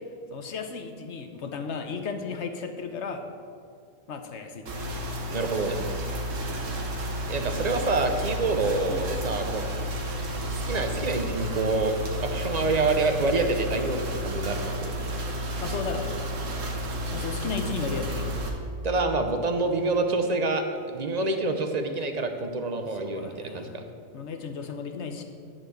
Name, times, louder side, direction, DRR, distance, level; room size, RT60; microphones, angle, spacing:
voice 1, 0.3-3.3 4.1-4.7 6.7-6.8 8.9-9.1 15.6-16.1 17.1-18.3 22.9-23.8 24.1-25.2, left 5 dB, 60° left, 6 dB, 1.1 m, -34 dB
sound 1, 4.7-18.5, equal, 70° right, 1.5 m, -31 dB
voice 2, 5.3-5.8 7.3-9.6 10.7-11.9 12.2-14.9 18.8-23.8, right 3 dB, 35° right, 6 dB, 0.8 m, -27 dB
11.0 x 4.5 x 7.8 m, 2.2 s
omnidirectional pair, 1.4 m